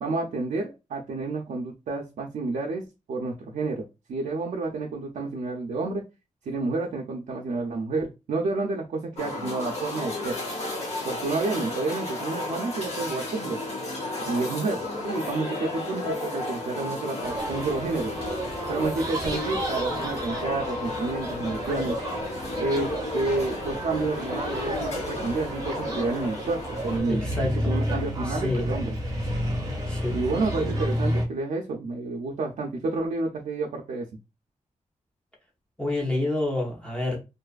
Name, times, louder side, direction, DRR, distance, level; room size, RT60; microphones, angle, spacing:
voice 1, 0.0-2.8 3.1-6.0 6.5-10.4 11.0-13.6 14.3-18.1 18.7-22.0 22.6-27.2 27.7-29.0 30.1-34.0, right 3 dB, 75° right, 0.4 m, -29 dB
sound 1, 9.2-27.0, left 2 dB, 55° left, 0.7 m, -33 dB
sound 2, 17.2-31.3, equal, 25° right, 0.7 m, -31 dB
voice 2, 27.1-27.7 28.3-28.6 29.9-30.2 35.8-37.2, left 2 dB, 10° left, 0.7 m, -28 dB
2.5 x 2.3 x 2.3 m
wide cardioid pair, 175°, 13 cm